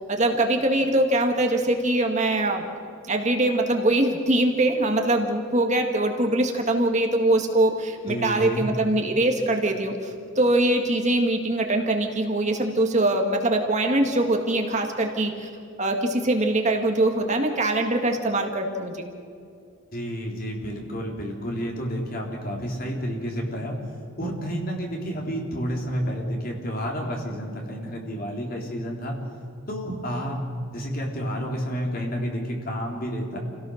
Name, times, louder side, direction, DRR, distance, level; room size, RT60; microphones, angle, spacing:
voice 1, 0.1-2.6 3.1-15.5 15.8-19.1, right 1 dB, 35° right, 3 dB, 1.8 m, -23 dB
voice 2, 8.1-8.6 19.9-23.8 24.2-29.2 29.7-30.4 30.7-33.4, equal, 45° left, 0 dB, 3.9 m, -30 dB
28.0 x 17.0 x 6.5 m, 2.4 s
head